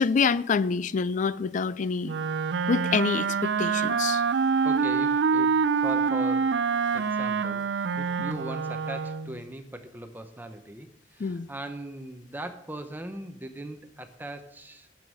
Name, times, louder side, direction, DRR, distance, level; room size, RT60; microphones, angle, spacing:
voice 1, 0.0-2.1 2.7-4.2 11.2-11.5, left 5 dB, 45° left, 0.4 m, -26 dB
Wind instrument woodwind instrument, 2.0-9.4, right 5 dB, 70° right, 0.5 m, -26 dB
voice 2, 4.6-6.6 6.9-14.9, right 1 dB, 10° right, 0.7 m, -39 dB
9.2 x 7.1 x 6.3 m
head